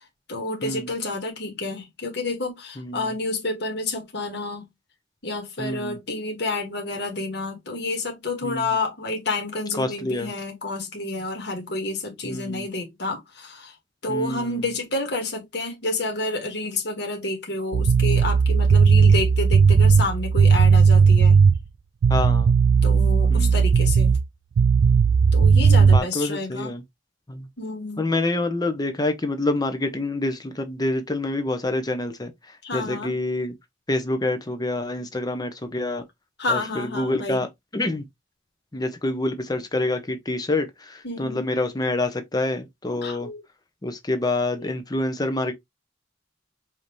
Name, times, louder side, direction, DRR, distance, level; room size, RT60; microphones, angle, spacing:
voice 1, 0.3-4.7 5.2-13.7 14.0-21.4 22.8-24.2 25.3-26.7 27.6-28.0 32.6-33.2 36.4-37.4 41.0-41.4 43.0-43.4 44.6-44.7, left 2 dB, 65° left, 1.5 m, -29 dB
voice 2, 2.8-3.1 5.6-6.0 8.4-8.8 9.7-10.3 12.2-12.7 14.1-14.7 22.1-22.5 23.3-23.6 25.5-26.8 27.3-27.5 28.0-33.5 33.9-36.0 36.5-37.5 37.7-38.0 38.7-43.3 43.8-45.5, left 2 dB, 20° left, 0.7 m, -27 dB
sound 1, 17.7-21.6 22.0-24.2 24.6-26.0, right 5 dB, 80° right, 0.3 m, -16 dB
5.2 x 2.8 x 3.0 m
head